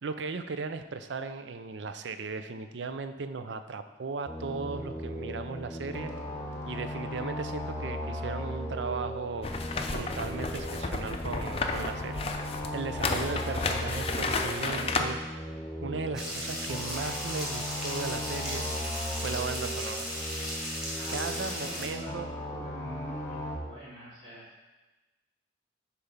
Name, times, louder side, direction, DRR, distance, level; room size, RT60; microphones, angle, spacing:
voice 1, 0.0-6.1 6.7-9.5 9.9-15.2 15.8-18.6 19.2-20.1 21.1-22.3, right 4 dB, 75° right, 9 dB, 0.5 m, -36 dB
sound 1, 4.3-23.6, equal, 15° left, 1.0 m, -37 dB
sound 2, 9.4-15.0, left 3 dB, 30° left, 0.5 m, -32 dB
sound 3, 16.1-21.9, equal, 5° right, 1.6 m, -36 dB
voice 2, 21.0-22.2 22.5-24.6, right 1 dB, 30° right, -12 dB, 2.5 m, -46 dB
6.7 x 4.6 x 5.6 m, 1.2 s
head